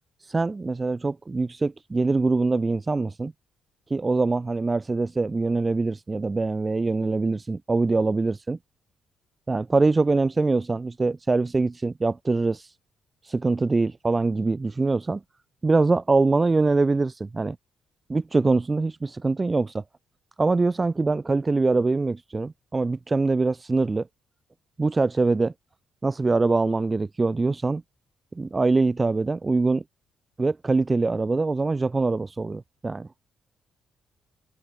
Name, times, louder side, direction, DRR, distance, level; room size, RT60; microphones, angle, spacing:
voice 1, 0.2-3.3 3.9-8.6 9.5-12.7 13.2-15.2 15.6-17.6 18.1-19.8 20.4-24.1 24.8-25.5 26.0-27.8 28.4-29.8 30.4-33.1, right 3 dB, 25° right, 0.8 m, -23 dB
cardioid pair, 90°, 0 cm